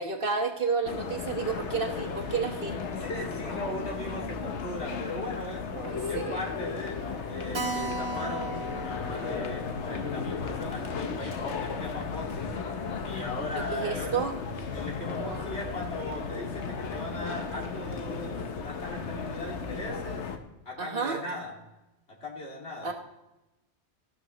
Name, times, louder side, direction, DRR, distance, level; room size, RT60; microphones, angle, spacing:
voice 1, 0.0-2.8 5.7-6.4 13.5-14.4 15.2-15.4 20.8-21.2 22.8-22.9, right 5 dB, 55° right, 3 dB, 1.3 m, -31 dB
sound 1, 0.8-20.4, left 5 dB, 85° left, 1.2 m, -35 dB
voice 2, 2.9-5.7 6.1-12.5 13.0-14.1 14.7-20.3 20.7-21.5 22.2-22.9, left 1 dB, 70° left, -1 dB, 2.7 m, -38 dB
Keyboard (musical), 7.5-12.6 12.9-13.0 13.3-13.4 13.6-13.7 14.3-14.6, right 2 dB, 40° right, 1.6 m, -39 dB
15.0 x 12.0 x 3.0 m, 0.98 s
omnidirectional pair, 1.1 m